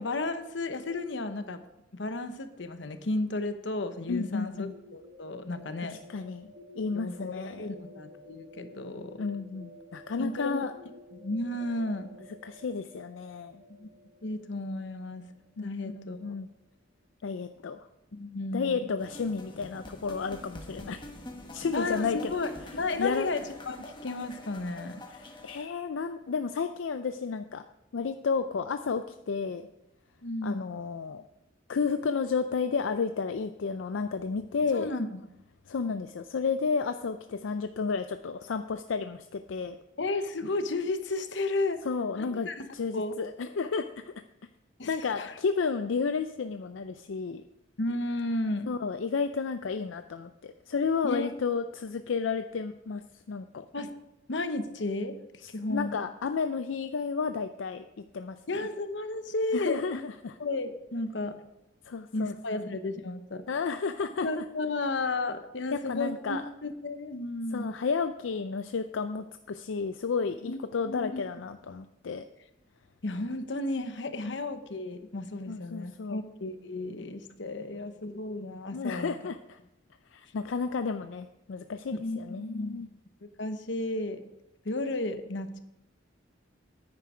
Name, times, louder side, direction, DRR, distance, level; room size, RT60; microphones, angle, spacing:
voice 1, 0.0-1.6 1.9-6.0 6.9-9.2 10.2-10.7 11.1-12.1 13.7-13.9 14.2-15.3 15.6-16.4 18.1-18.9 21.7-25.0 30.2-30.7 34.7-35.2 40.0-41.8 42.2-42.7 42.9-43.2 44.8-44.9 45.2-45.3 47.8-48.7 51.0-51.3 53.7-53.9 54.3-55.1 55.5-56.0 58.5-60.0 60.4-61.3 62.1-63.4 64.2-67.7 70.4-70.6 70.8-71.2 73.0-79.1 81.9-82.8 83.2-84.2 84.6-85.6, left 2 dB, 65° left, 9 dB, 0.9 m, -33 dB
voice 2, 4.1-4.7 5.9-7.7 9.2-10.7 12.4-13.6 15.6-16.5 17.2-17.8 18.5-21.0 21.5-22.3 23.0-23.3 25.1-27.6 27.9-29.7 30.4-31.2 31.7-34.9 35.7-39.8 41.8-43.9 44.9-47.4 48.7-53.7 55.7-58.7 59.5-60.4 61.9-62.6 63.5-64.4 65.7-66.4 67.5-72.3 74.2-74.4 75.5-76.3 78.7-79.6 80.1-82.9, left 5 dB, 80° left, 9 dB, 0.4 m, -32 dB
sound 1, 4.5-16.3, left 1 dB, 55° right, 3.3 m, -52 dB
sound 2, 19.0-25.6, left 1 dB, 25° left, 1.2 m, -45 dB
9.6 x 9.3 x 4.9 m, 0.91 s
head